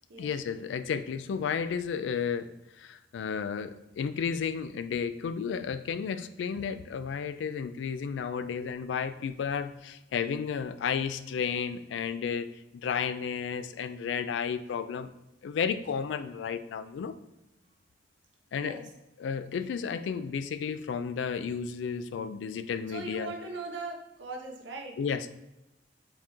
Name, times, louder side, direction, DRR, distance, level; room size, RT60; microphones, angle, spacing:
voice 1, 0.2-2.5 2.8-15.1 15.4-17.2 18.5-18.8 19.2-23.3 25.0-25.3, left 6 dB, 80° left, 12 dB, 0.3 m, -32 dB
voice 2, 18.6-18.9 22.9-25.0, right 3 dB, 85° right, 1 dB, 0.9 m, -40 dB
4.6 x 3.5 x 3.0 m, 0.95 s
head